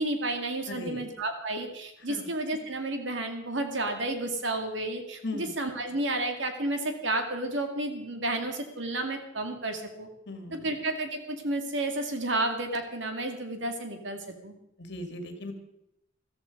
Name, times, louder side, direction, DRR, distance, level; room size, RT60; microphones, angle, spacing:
voice 1, 0.0-10.1 10.5-14.5, right 2 dB, 70° right, 5 dB, 2.3 m, -31 dB
voice 2, 0.7-1.0 2.1-2.3 5.2-5.5 10.3-10.7 14.8-15.5, left 2 dB, 60° left, 6 dB, 2.3 m, -38 dB
14.0 x 14.0 x 5.3 m, 0.81 s
head